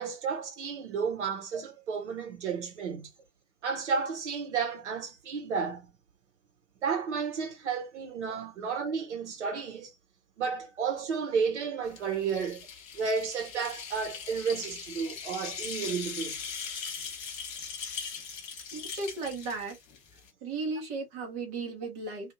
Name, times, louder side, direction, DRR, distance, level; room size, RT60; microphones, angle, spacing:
voice 1, 0.0-3.1 3.6-5.9 6.8-9.9 10.4-12.7 12.9-16.4, right 6 dB, 45° right, 0.9 m, -32 dB
sound 1, 11.9-20.3, left 6 dB, 20° left, 1.1 m, -40 dB
voice 2, 18.7-19.8 20.4-22.3, right 3 dB, 15° right, 0.7 m, -35 dB
2.6 x 2.4 x 2.4 m
figure-of-eight pair, 120°, 47 cm